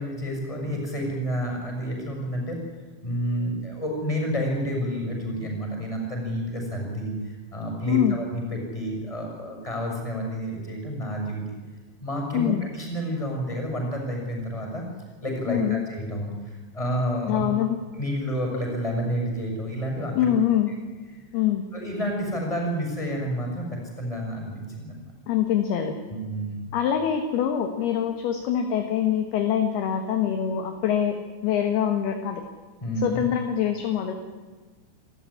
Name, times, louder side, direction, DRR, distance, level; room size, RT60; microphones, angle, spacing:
voice 1, 0.0-2.6 3.0-11.5 12.0-14.8 15.2-17.4 18.0-20.1 21.7-25.0 26.1-26.6 32.8-33.2, equal, 5° left, 1 dB, 6.2 m, -29 dB
voice 2, 15.5-15.8 17.3-17.8 20.1-20.7 21.3-21.7 25.3-26.0 26.7-31.2 31.4-32.4 33.0-34.1, left 9 dB, 65° left, 6 dB, 3.0 m, -24 dB
28.5 x 14.0 x 10.0 m, 1.4 s
omnidirectional pair, 5.7 m